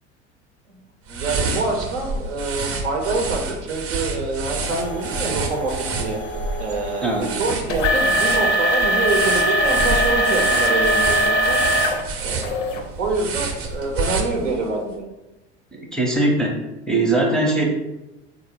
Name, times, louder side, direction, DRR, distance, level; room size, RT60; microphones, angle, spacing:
sound 1, 1.1-14.8, right 3 dB, 40° right, 0.6 m, -29 dB
voice 1, 1.1-5.7 6.0-6.2 6.6-7.0 7.4-11.6 12.2-12.6 13.0-15.0, right 3 dB, 80° right, 1 dB, 0.7 m, -26 dB
sound 2, 4.6-12.0 12.4-12.8 13.4-13.5 14.2-14.3, equal, 80° left, 0.5 m, -22 dB
voice 2, 15.9-16.6 16.9-17.7, right 2 dB, ahead, -2 dB, 0.5 m, -20 dB
3.4 x 2.1 x 3.5 m, 1.0 s
hypercardioid pair, 75°, 35 cm